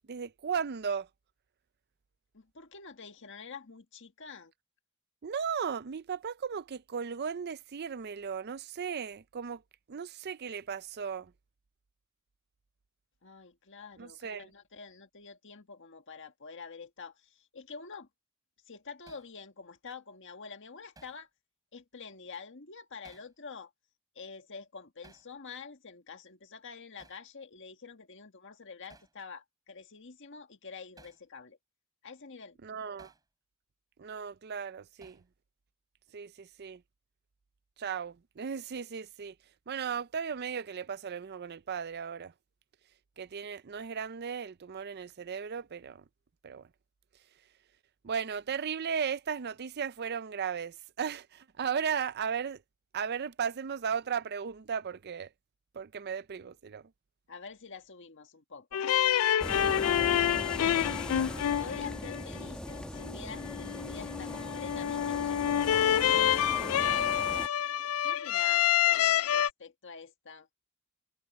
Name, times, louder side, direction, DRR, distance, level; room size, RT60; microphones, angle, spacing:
voice 1, 0.1-1.1 5.2-9.6 9.9-11.3 14.0-14.5 32.6-33.1 34.0-35.2 36.1-36.8 37.8-39.3 39.7-42.3 43.2-46.0 46.4-46.7 48.0-52.6 52.9-55.3 55.7-56.8, right 7 dB, 50° right, 0.5 m, -36 dB
voice 2, 2.3-4.5 13.2-18.1 18.7-21.3 21.7-23.7 24.1-31.6 32.0-32.6 57.3-58.9 61.6-67.1 68.0-70.5, left 5 dB, 60° left, 1.7 m, -47 dB
Hammer, 19.1-19.3 21.0-21.2 23.0-23.4 25.0-25.3 27.0-27.3 28.9-29.2 31.0-31.2 33.0-33.3 35.0-35.3, right 2 dB, 15° right, 4.9 m, -58 dB
sound 1, 58.7-69.5, left 10 dB, 75° left, 0.4 m, -28 dB
sound 2, 59.4-67.5, equal, 5° left, 1.2 m, -40 dB
head